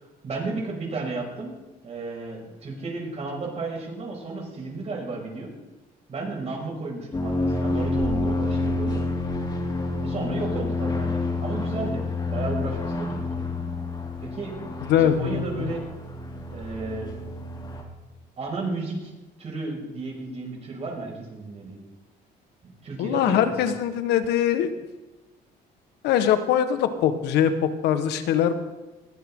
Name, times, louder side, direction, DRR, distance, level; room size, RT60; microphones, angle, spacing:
voice 1, 0.2-5.5 6.1-9.0 10.0-13.5 14.2-14.5 14.9-15.8 16.5-17.1 17.5-17.6 18.4-19.1 19.4-21.8 22.8-23.7, right 3 dB, 40° right, -1 dB, 6.2 m, -33 dB
sound 1, 7.1-17.8, left 2 dB, 25° left, 3.3 m, -28 dB
voice 2, 14.8-15.7 23.0-24.7 26.0-28.5, left 9 dB, 85° left, 10 dB, 1.5 m, -22 dB
20.5 x 15.0 x 3.8 m, 1.1 s
cardioid pair, 110°, 17 cm